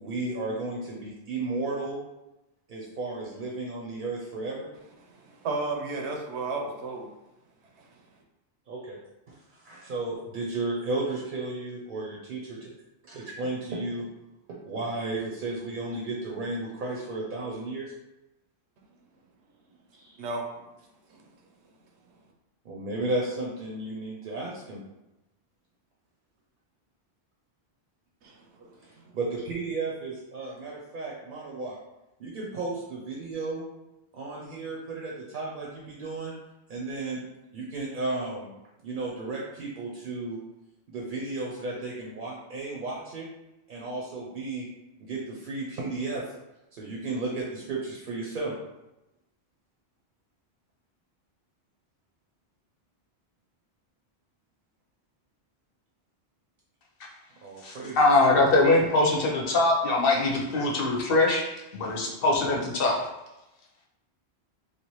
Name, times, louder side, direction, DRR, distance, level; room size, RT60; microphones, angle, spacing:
voice 1, 0.0-2.0 2.7-4.7 8.7-9.0 9.3-12.7 13.0-14.1 14.5-17.9 19.9-20.3 22.6-24.8 28.8-31.8 32.2-33.6 34.1-36.3 36.7-37.2 37.5-38.5 38.8-40.4 40.9-43.3 43.7-44.7 45.0-46.2 46.7-48.5 57.4-58.0, right 2 dB, 55° right, -3 dB, 0.7 m, -34 dB
voice 2, 5.1-7.1 7.8-7.9 20.2-20.4 21.1-21.2 28.2-29.1, right 3 dB, 80° right, 2 dB, 0.9 m, -34 dB
voice 3, 57.6-61.5 61.7-63.0, left 2 dB, 60° left, -2 dB, 0.9 m, -22 dB
3.2 x 2.4 x 3.0 m, 0.94 s
omnidirectional pair, 1.1 m